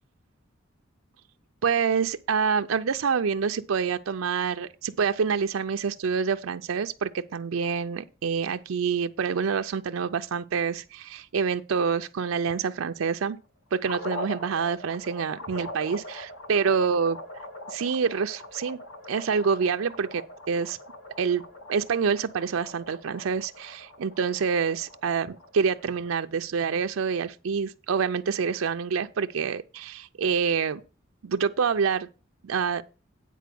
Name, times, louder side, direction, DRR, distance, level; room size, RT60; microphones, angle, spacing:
voice 1, 1.6-13.4 13.7-17.2 17.7-18.8 19.1-20.8 21.2-21.4 21.7-30.8 31.2-32.1 32.4-32.8, right 6 dB, 85° right, 0.5 m, -27 dB
sound 1, 13.8-26.1, left 1 dB, 65° left, 1.1 m, -42 dB
9.3 x 4.2 x 6.8 m
head